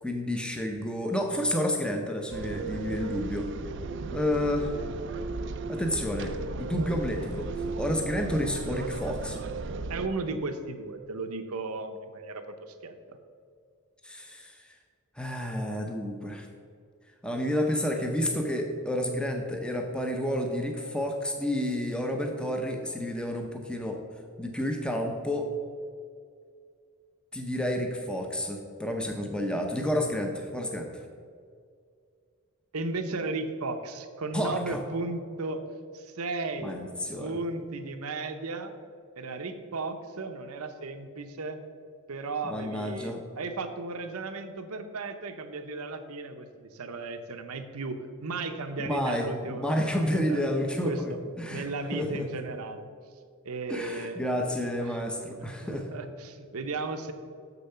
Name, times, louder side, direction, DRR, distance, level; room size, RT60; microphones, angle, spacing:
voice 1, 0.0-3.5 4.1-4.7 5.7-7.5 7.8-9.4 14.0-14.7 15.2-16.5 17.2-24.0 24.4-25.5 27.3-31.0 34.3-34.8 36.6-37.4 42.5-43.2 48.8-52.3 53.7-55.9, left 1 dB, 5° left, 3 dB, 0.6 m, -30 dB
sound 1, 2.3-10.1, right 3 dB, 55° right, 0.4 m, -35 dB
voice 2, 9.9-13.2 32.7-35.7 35.9-36.8 37.2-38.8 39.2-41.6 42.1-50.0 50.3-50.4 50.8-51.2 51.5-52.9 53.4-54.2 54.9-55.0 55.4-57.1, right 3 dB, 90° right, 7 dB, 0.8 m, -35 dB
6.9 x 6.8 x 5.6 m, 2.2 s
head